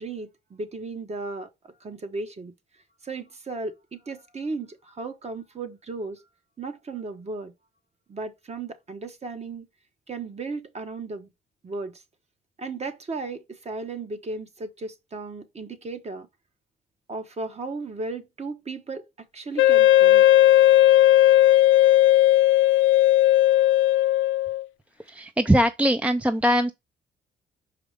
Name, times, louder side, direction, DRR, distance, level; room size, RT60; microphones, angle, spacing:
voice 1, 0.0-2.5 3.0-6.2 6.6-7.5 8.1-9.7 10.1-11.3 11.6-12.0 12.6-16.3 17.1-20.3, right 3 dB, 35° right, 1.2 m, -35 dB
Wind instrument woodwind instrument, 19.6-24.6, left 14 dB, 80° left, 0.4 m, -16 dB
voice 2, 25.0-26.7, equal, 5° right, 0.5 m, -21 dB
5.6 x 4.9 x 5.0 m
cardioid pair, 90°, 20 cm